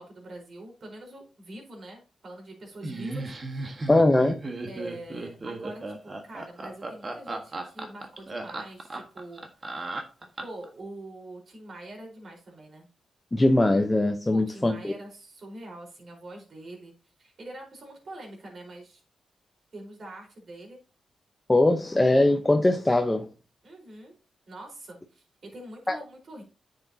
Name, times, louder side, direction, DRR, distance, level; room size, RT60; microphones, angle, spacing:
voice 1, 0.0-3.7 4.7-9.9 10.4-12.9 14.3-16.9 17.2-19.0 19.7-20.8 23.6-24.1 24.5-25.2 25.5-26.4, right 1 dB, 55° right, 4.4 m, -44 dB
Laughter, 2.8-10.7, right 2 dB, 40° right, 1.5 m, -35 dB
voice 2, 3.9-4.4 13.3-14.9 21.5-23.3 25.9-26.0, left 2 dB, 15° left, 0.9 m, -21 dB
9.8 x 6.9 x 2.8 m
cardioid pair, 85°, 0 cm